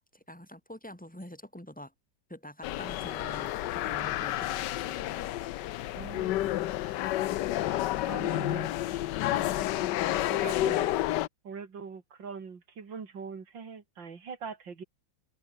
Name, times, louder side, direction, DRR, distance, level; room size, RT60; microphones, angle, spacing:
voice 1, 0.3-1.9 2.3-6.0 10.4-10.7, left 1 dB, 5° left, 3.5 m, -48 dB
sound 1, 2.6-11.3, left 14 dB, 75° left, 1.3 m, -30 dB
voice 2, 5.9-6.4 7.6-8.7 10.3-10.9 11.4-14.8, right 5 dB, 75° right, 3.3 m, -42 dB
omnidirectional pair, 2.0 m